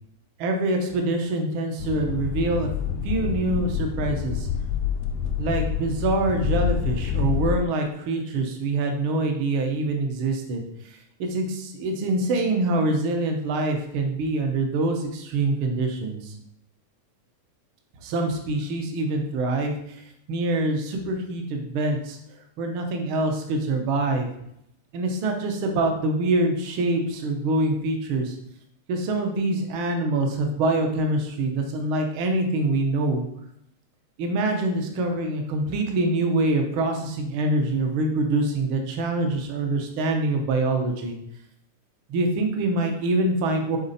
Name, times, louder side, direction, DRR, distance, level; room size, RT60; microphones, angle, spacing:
voice 1, 0.4-2.7 3.0-4.5 5.4-10.6 11.2-16.3 18.0-19.8 20.3-22.2 22.6-24.3 24.9-28.4 28.9-33.2 34.2-41.2 42.1-43.8, right 2 dB, 65° right, 3 dB, 1.3 m, -25 dB
sound 1, 1.8-7.6, left 9 dB, 80° left, 2.1 m, -27 dB
9.3 x 4.0 x 4.1 m, 0.77 s
omnidirectional pair, 3.7 m